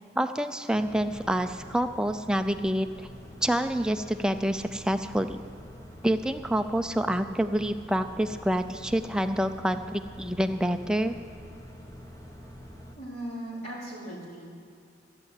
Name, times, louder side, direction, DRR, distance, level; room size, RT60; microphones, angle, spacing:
voice 1, 0.2-3.1 3.4-5.4 6.0-11.2, equal, 5° right, 8 dB, 0.4 m, -27 dB
sound 1, 0.7-13.0, equal, 15° left, 1.1 m, -46 dB
voice 2, 13.0-14.5, right 1 dB, 35° left, -6 dB, 4.0 m, -38 dB
14.5 x 8.6 x 8.2 m, 2.5 s
head